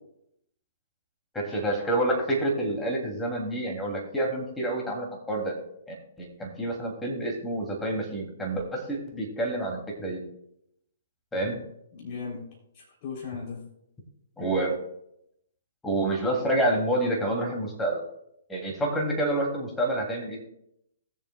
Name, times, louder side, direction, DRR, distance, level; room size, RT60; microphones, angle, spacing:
voice 1, 1.3-5.6 5.9-10.2 11.3-11.6 14.4-14.8 15.8-18.0 18.5-20.4, right 1 dB, 10° left, -1 dB, 2.8 m, -28 dB
voice 2, 11.9-12.4 12.7-13.6, left 5 dB, 40° left, -2 dB, 3.5 m, -37 dB
20.0 x 7.2 x 2.3 m, 0.77 s
hypercardioid pair, 130°, 0 cm